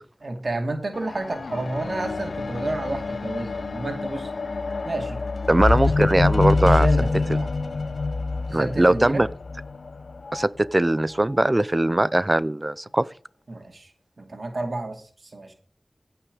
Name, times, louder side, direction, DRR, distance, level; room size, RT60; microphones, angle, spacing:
voice 1, 0.2-4.3 4.8-5.2 6.6-7.5 8.5-9.3 13.5-13.9 14.2-15.0 15.3-15.5, right 2 dB, 65° right, 2.4 m, -30 dB
sound 1, 0.9-10.5 11.3-11.4, left 3 dB, 90° left, 0.7 m, -26 dB
voice 2, 5.5-6.9 8.5-9.3 10.3-13.0, right 1 dB, 30° right, 0.6 m, -20 dB
16.0 x 5.9 x 5.2 m
wide cardioid pair, 45°, 0 cm